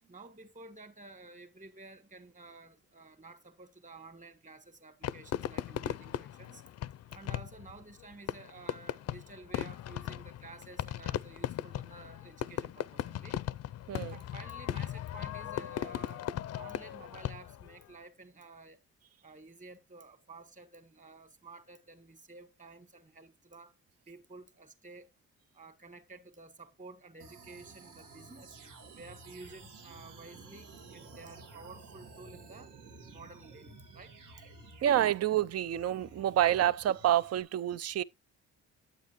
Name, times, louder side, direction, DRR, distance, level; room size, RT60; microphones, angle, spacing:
voice 1, 0.1-6.6 7.1-13.4 14.1-16.2 16.5-18.8 19.2-23.7 24.1-25.1 25.5-28.6 28.9-32.7 33.1-34.1, right 3 dB, 25° right, 1.8 m, -52 dB
Fireworks, 5.0-17.7, left 11 dB, 55° left, 0.5 m, -38 dB
voice 2, 13.9-14.2 34.8-38.0, right 11 dB, 55° right, 0.6 m, -28 dB
sound 1, 27.2-37.4, right 3 dB, 80° right, 2.2 m, -53 dB
9.3 x 8.6 x 3.1 m
cardioid pair, 90°, 30 cm